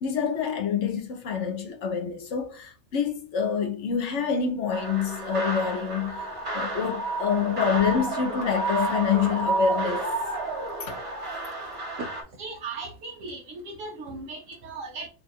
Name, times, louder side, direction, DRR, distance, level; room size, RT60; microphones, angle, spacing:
voice 1, 0.0-6.2 6.5-10.1 10.8-11.0, left 7 dB, 65° left, 1.0 m, -27 dB
sound 1, 4.7-12.2, right 2 dB, 50° right, 1.4 m, -30 dB
voice 2, 12.0-15.1, right 3 dB, 75° right, 1.0 m, -37 dB
2.9 x 2.4 x 4.2 m
omnidirectional pair, 1.4 m